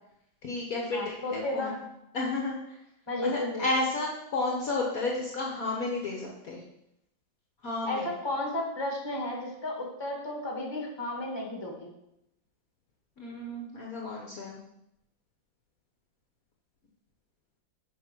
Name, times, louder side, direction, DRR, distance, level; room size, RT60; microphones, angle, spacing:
voice 1, 0.4-1.8 2.1-2.8 3.2-6.6 7.6-8.1 13.2-14.6, left 2 dB, 50° left, -1 dB, 1.4 m, -32 dB
voice 2, 0.9-1.8 3.1-3.6 7.9-11.9, left 1 dB, 15° left, 0 dB, 1.5 m, -33 dB
7.3 x 5.3 x 6.0 m, 0.82 s
omnidirectional pair, 2.1 m